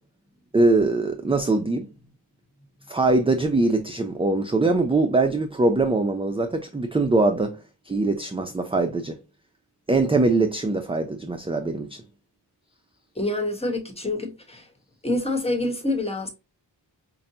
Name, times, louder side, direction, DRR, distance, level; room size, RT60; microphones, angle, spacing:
voice 1, 0.5-1.9 2.9-7.6 7.9-9.2 9.9-12.0, right 3 dB, 15° right, 0.4 m, -22 dB
voice 2, 13.2-14.7 15.0-16.3, left 2 dB, 15° left, 1.2 m, -26 dB
5.2 x 2.2 x 2.8 m
cardioid pair, 55°, 44 cm